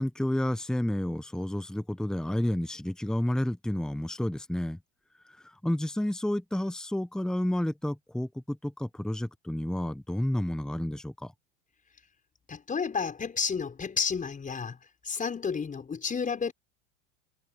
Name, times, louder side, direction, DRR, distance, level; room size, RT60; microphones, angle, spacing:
voice 1, 0.0-4.8 5.4-11.3, left 1 dB, ahead, 1.2 m, -30 dB
voice 2, 12.5-14.8 15.0-16.5, left 5 dB, 20° left, 5.8 m, -31 dB
hypercardioid pair, 95°, 35 cm